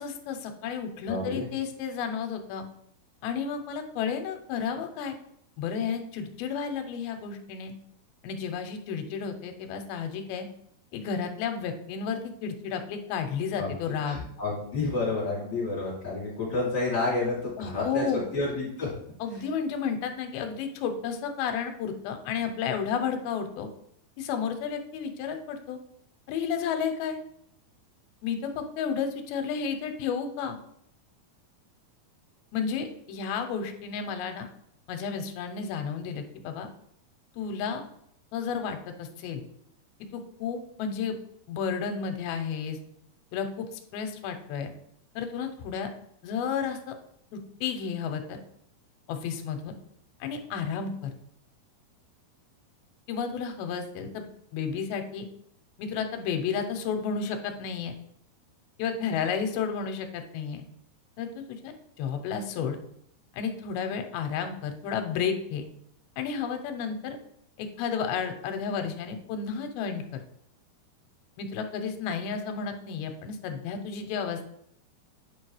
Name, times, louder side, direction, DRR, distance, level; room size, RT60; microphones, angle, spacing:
voice 1, 0.0-2.7 3.2-5.2 5.6-7.7 8.2-10.5 10.9-14.2 17.6-18.2 19.2-23.7 24.2-25.8 26.3-27.2 28.2-30.6 32.5-34.5 34.9-36.7 37.4-37.8 38.3-39.4 40.1-41.2 41.5-42.8 43.3-44.7 45.2-45.9 46.2-47.0 47.3-48.4 49.1-49.7 50.2-51.1 53.1-55.3 55.8-57.9 58.8-60.6 61.2-62.8 63.3-65.6 66.2-67.2 67.6-70.2 71.4-74.5, left 6 dB, 85° left, 6 dB, 2.5 m, -32 dB
voice 2, 1.1-1.5 13.6-13.7 14.0-18.9 19.3-19.4, left 3 dB, 30° left, -7 dB, 2.7 m, -30 dB
8.1 x 4.6 x 3.1 m, 0.71 s
omnidirectional pair, 4.5 m